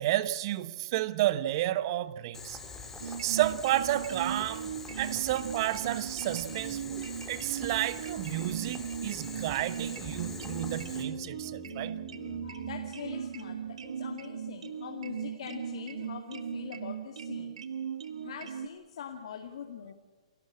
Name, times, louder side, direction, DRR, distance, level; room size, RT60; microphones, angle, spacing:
voice 1, 0.0-2.6 3.0-12.0, right 14 dB, 40° right, 1.1 m, -31 dB
Boiling, 2.3-11.0, left 4 dB, 10° left, 3.3 m, -44 dB
sound 1, 3.0-18.7, right 8 dB, 75° right, 1.3 m, -38 dB
sound 2, 10.1-13.8, left 4 dB, 25° left, 3.6 m, -48 dB
voice 2, 12.2-17.6 18.2-19.9, left 8 dB, 60° left, 2.3 m, -43 dB
29.0 x 12.0 x 8.8 m
hypercardioid pair, 140°, 4 cm